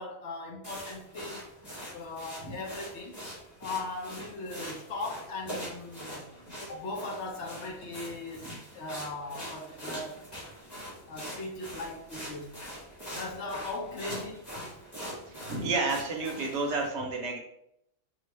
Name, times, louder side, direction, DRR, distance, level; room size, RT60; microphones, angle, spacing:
voice 1, 0.0-1.5 1.9-3.2 3.6-6.2 6.6-8.5 8.7-10.3 11.1-12.5 13.1-14.4, left 2 dB, 60° left, 0 dB, 0.9 m, -38 dB
sound 1, 0.6-16.9, equal, 15° left, 1.4 m, -43 dB
voice 2, 15.3-17.4, right 3 dB, 60° right, 1 dB, 0.9 m, -31 dB
4.6 x 2.4 x 3.2 m, 0.75 s
omnidirectional pair, 1.5 m